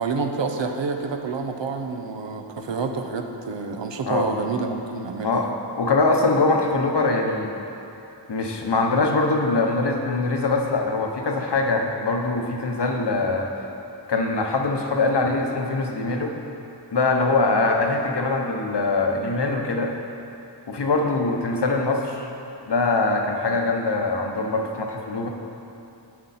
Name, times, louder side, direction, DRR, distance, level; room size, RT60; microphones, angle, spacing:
voice 1, 0.0-5.5, right 4 dB, 80° right, 5 dB, 0.7 m, -28 dB
voice 2, 5.8-7.5 8.3-13.5 14.1-16.3 16.9-19.9 20.7-22.3 22.7-25.3, left 3 dB, 65° left, 2 dB, 0.9 m, -23 dB
7.9 x 7.5 x 4.2 m, 2.8 s
wide cardioid pair, 60°, 43 cm